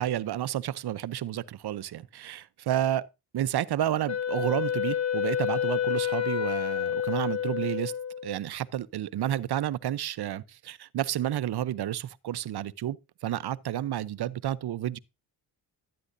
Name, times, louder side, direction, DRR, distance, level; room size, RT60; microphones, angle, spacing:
voice 1, 0.0-3.0 3.3-7.9 8.2-13.0 13.2-15.0, right 12 dB, 55° right, 0.7 m, -30 dB
Wind instrument woodwind instrument, 4.1-8.4, left 9 dB, 35° left, 1.9 m, -29 dB
11.5 x 9.5 x 2.6 m
supercardioid pair, 55°, 47 cm